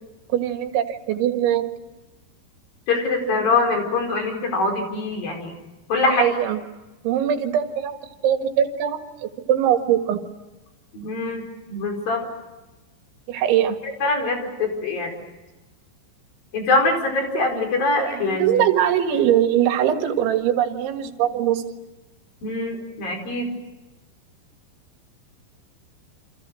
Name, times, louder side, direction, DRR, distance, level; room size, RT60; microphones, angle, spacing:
voice 1, 0.3-1.7 6.0-6.6 7.0-8.0 8.2-10.2 13.3-13.8 18.0-21.6, right 10 dB, 80° right, 6 dB, 4.2 m, -21 dB
voice 2, 2.9-5.5 5.9-6.2 10.9-12.2 14.0-15.1 16.5-18.6 22.4-23.5, left 3 dB, 50° left, 3 dB, 6.3 m, -23 dB
29.5 x 27.0 x 6.4 m, 1.1 s
omnidirectional pair, 5.3 m